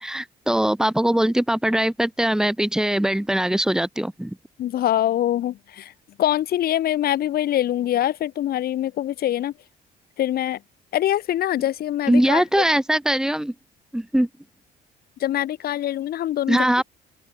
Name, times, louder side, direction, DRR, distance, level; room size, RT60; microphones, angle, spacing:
voice 1, 0.0-4.4 12.1-13.5 13.9-14.3 16.5-16.8, right 1 dB, 5° right, 7.8 m, -21 dB
voice 2, 4.6-5.9 6.2-9.5 10.2-10.6 10.9-12.4 15.2-16.7, left 12 dB, 65° left, 5.5 m, -24 dB
open air
cardioid pair, 110°, 17 cm